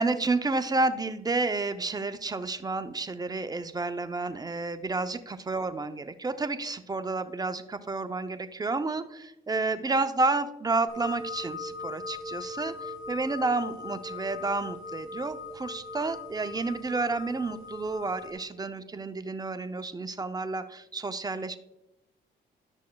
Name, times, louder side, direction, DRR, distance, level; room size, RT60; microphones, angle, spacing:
voice 1, 0.0-21.6, right 3 dB, 20° right, 9 dB, 0.5 m, -30 dB
sound 1, 10.9-18.3, left 3 dB, 45° left, 2.2 m, -40 dB
11.5 x 6.3 x 2.2 m, 0.87 s
cardioid pair, 90°, 20 cm